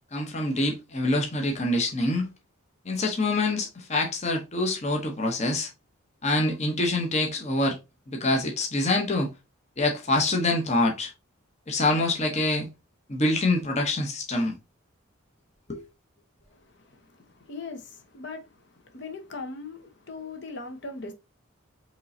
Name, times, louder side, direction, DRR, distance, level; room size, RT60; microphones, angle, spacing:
voice 1, 0.1-2.3 2.8-5.7 6.2-7.8 8.1-9.3 9.8-11.1 11.7-12.7 13.1-14.5 15.7-15.8, left 2 dB, 30° left, 0.9 m, -25 dB
voice 2, 16.5-21.1, left 3 dB, 55° left, 1.0 m, -40 dB
5.2 x 3.2 x 2.7 m
head